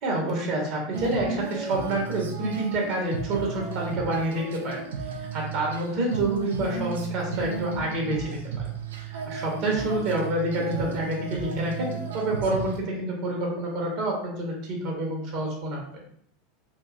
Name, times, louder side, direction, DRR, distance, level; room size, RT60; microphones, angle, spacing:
voice 1, 0.0-4.8 5.0-8.4 9.0-16.0, right 1 dB, 50° right, -1 dB, 0.9 m, -28 dB
Female singing, 0.9-12.8, right 5 dB, 65° right, 0.4 m, -34 dB
2.9 x 2.6 x 2.5 m, 0.66 s
figure-of-eight pair, 80°, 0 cm